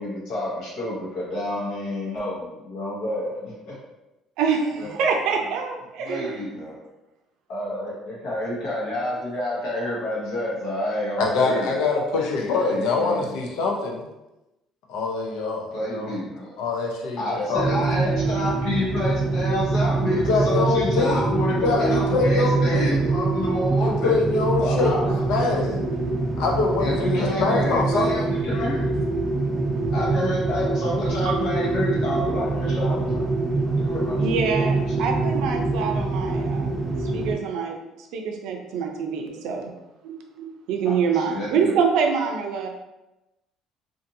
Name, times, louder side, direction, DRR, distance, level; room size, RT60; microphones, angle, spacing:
voice 1, 0.0-3.7 4.8-4.9 6.0-6.7 7.5-11.7 12.5-13.7 15.7-16.6 17.2-24.1 24.6-25.2 26.8-29.0 29.9-33.2 33.8-34.3 34.9-35.0 40.8-41.7, left 1 dB, 60° left, -5 dB, 1.0 m, -29 dB
voice 2, 4.4-6.4 25.4-25.5 31.2-31.4 34.2-37.8 38.1-39.7 40.0-42.7, right 5 dB, 70° right, 2 dB, 0.5 m, -26 dB
voice 3, 11.2-14.1 14.9-16.1 16.6-17.2 17.5-17.8 20.1-22.9 23.8-24.9 25.3-25.7 26.4-28.1, left 3 dB, 80° left, 0 dB, 0.5 m, -24 dB
sound 1, 17.6-37.3, right 3 dB, 10° right, 0.6 m, -24 dB
2.6 x 2.5 x 2.6 m, 0.98 s
cardioid pair, 150°, 0 cm